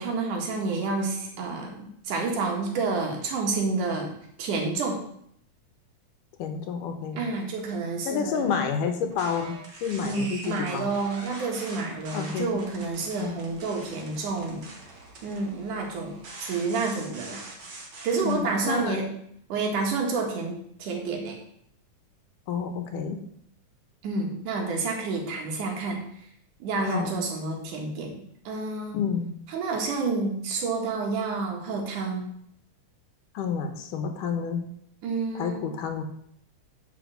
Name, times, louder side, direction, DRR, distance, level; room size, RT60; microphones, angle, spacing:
voice 1, 0.0-4.1 4.4-5.0 7.2-8.5 10.0-14.7 15.2-17.5 18.0-19.0 19.5-21.4 24.0-26.0 26.6-28.2 28.4-29.0 29.5-32.3 35.0-35.7, right 3 dB, 75° right, 1 dB, 3.2 m, -29 dB
voice 2, 6.4-7.2 8.0-10.9 12.1-12.5 13.2-13.4 18.2-19.0 22.5-23.2 26.8-27.2 28.9-29.3 33.3-34.7 35.3-36.0, left 6 dB, 85° left, 6 dB, 2.7 m, -29 dB
sound 1, 9.1-18.4, right 2 dB, 40° right, 1.8 m, -44 dB
9.8 x 4.5 x 6.5 m, 0.68 s
omnidirectional pair, 3.6 m